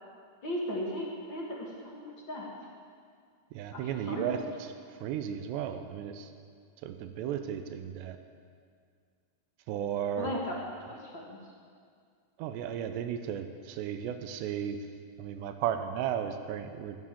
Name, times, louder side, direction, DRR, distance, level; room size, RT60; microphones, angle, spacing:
voice 1, 0.4-2.5 3.7-4.5 10.2-10.5 11.0-11.4, left 1 dB, 45° left, -3 dB, 1.5 m, -36 dB
voice 2, 3.5-4.4 4.9-6.3 6.8-8.2 9.7-10.3 12.4-14.8 15.2-17.0, right 9 dB, 80° right, 8 dB, 2.8 m, -34 dB
20.5 x 8.6 x 7.5 m, 2.1 s
omnidirectional pair, 5.2 m